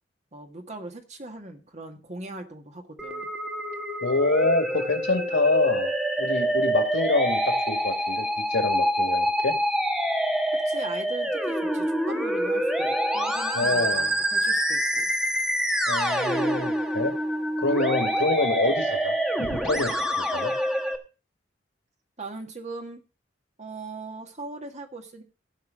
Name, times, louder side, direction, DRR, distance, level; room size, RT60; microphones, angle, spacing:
voice 1, 0.3-3.3 10.7-15.1 22.2-23.0 23.6-25.2, right 2 dB, 40° right, 4 dB, 1.8 m, -39 dB
Musical instrument, 3.0-21.0, equal, 5° right, 1.3 m, -26 dB
voice 2, 4.0-5.9 6.2-8.2 8.5-9.6 13.5-14.1 15.9-17.1 17.6-20.5, left 2 dB, 90° left, 6 dB, 2.2 m, -26 dB
16.0 x 5.6 x 5.2 m, 0.33 s
head